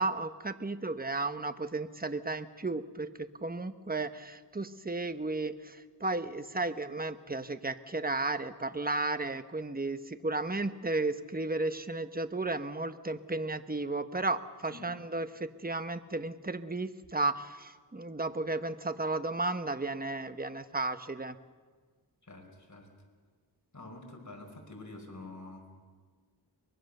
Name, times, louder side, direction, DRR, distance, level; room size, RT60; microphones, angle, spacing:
voice 1, 0.0-21.3, right 2 dB, 20° right, 10 dB, 1.1 m, -34 dB
voice 2, 22.2-22.9 23.7-25.9, left 2 dB, 45° left, 2 dB, 5.1 m, -47 dB
24.0 x 21.0 x 6.7 m, 1.5 s
wide cardioid pair, 70°, 41 cm